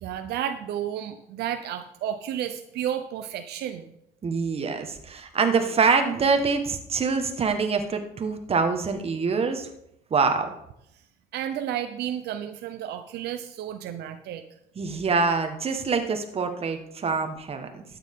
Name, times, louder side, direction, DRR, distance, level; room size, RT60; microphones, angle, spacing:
voice 1, 0.0-3.9 11.3-14.4, right 10 dB, 75° right, 8 dB, 0.8 m, -32 dB
voice 2, 4.2-9.7 10.1-10.5 14.8-17.8, right 5 dB, 35° right, 6 dB, 1.5 m, -25 dB
12.5 x 9.0 x 3.7 m, 0.78 s
cardioid pair, 110°, 17 cm